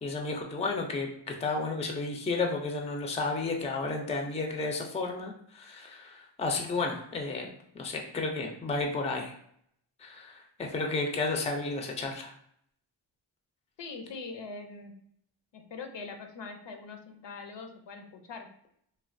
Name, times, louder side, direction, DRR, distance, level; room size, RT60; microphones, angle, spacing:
voice 1, 0.0-9.3 10.0-12.3, left 3 dB, 15° left, 2 dB, 0.4 m, -32 dB
voice 2, 13.8-15.0 15.5-18.5, left 4 dB, 65° left, 4 dB, 0.6 m, -42 dB
3.2 x 2.2 x 2.5 m, 0.69 s
wide cardioid pair, 95°, 46 cm